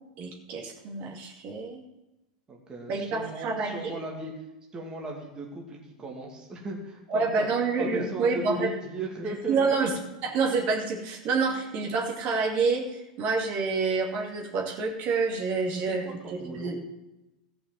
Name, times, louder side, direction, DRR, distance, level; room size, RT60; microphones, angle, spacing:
voice 1, 0.2-1.8 2.9-3.9 7.1-8.7 9.5-9.9 10.2-16.0 16.3-16.8, right 4 dB, 45° right, 0 dB, 2.4 m, -28 dB
voice 2, 2.5-4.4 4.7-7.5 7.8-10.0 11.5-11.6 15.7-16.7, right 2 dB, 20° right, -1 dB, 2.3 m, -37 dB
13.5 x 6.0 x 7.6 m, 0.99 s
hypercardioid pair, 120°, 4 cm